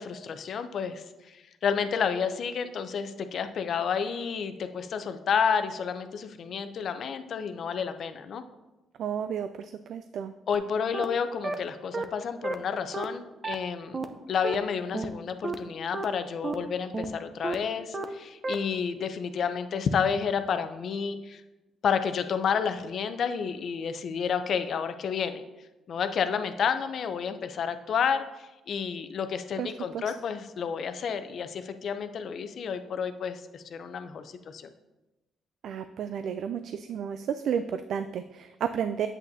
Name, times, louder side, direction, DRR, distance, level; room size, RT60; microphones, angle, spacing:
voice 1, 0.0-8.4 10.5-14.0 14.3-21.4 21.8-25.4 25.9-34.7, left 6 dB, 60° left, 9 dB, 0.6 m, -30 dB
voice 2, 9.0-10.3 29.6-30.0 35.6-39.1, right 8 dB, 70° right, 10 dB, 0.3 m, -32 dB
sound 1, 10.5-10.6 10.9-11.0 11.4-11.5 11.9-12.0 12.4-12.5 12.9-13.0 13.4-13.5 13.9-14.0 14.4-14.5 14.9-15.1 15.4-15.5 15.9-16.0 16.4-16.5 16.9-17.1 17.4-17.5 17.9-18.0 18.4-18.5, right 3 dB, 30° right, 0.6 m, -31 dB
8.2 x 8.1 x 2.7 m, 1.1 s
cardioid pair, 90°, 0 cm